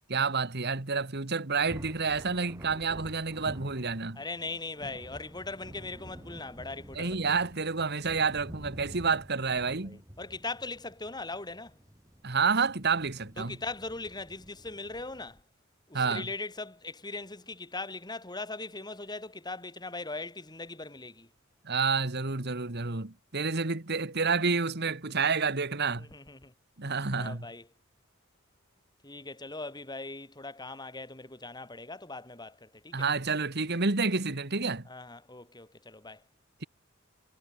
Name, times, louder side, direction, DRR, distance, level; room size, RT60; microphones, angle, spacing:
voice 1, 0.1-4.2 7.0-10.0 12.2-13.6 15.9-16.3 21.7-26.1 26.8-27.5 32.9-34.9, right 4 dB, 50° right, 1.8 m, -29 dB
Thunder, 1.6-15.4, equal, 15° right, 5.4 m, -49 dB
voice 2, 4.2-7.4 9.6-11.8 13.4-15.4 15.9-21.3 26.0-26.5 27.1-27.7 29.0-33.1 34.9-36.2, left 3 dB, 20° left, 4.2 m, -40 dB
head